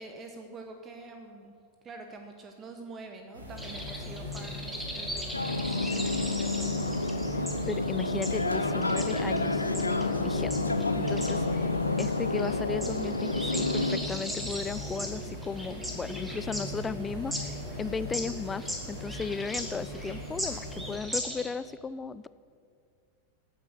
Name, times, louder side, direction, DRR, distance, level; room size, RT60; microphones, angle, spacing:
voice 1, 0.0-1.5 1.8-6.8 11.0-11.4, right 3 dB, 25° right, 5 dB, 1.0 m, -46 dB
sound 1, 3.3-20.9, left 1 dB, 80° right, 2.5 m, -39 dB
sound 2, 3.6-21.5, equal, 5° right, 1.9 m, -39 dB
sound 3, 5.3-14.0, left 2 dB, 80° left, 0.6 m, -29 dB
voice 2, 7.3-9.7 10.1-11.7 12.0-22.3, left 5 dB, 15° left, 16 dB, 0.3 m, -36 dB
13.5 x 7.9 x 6.5 m, 2.3 s
figure-of-eight pair, 90°, 0 cm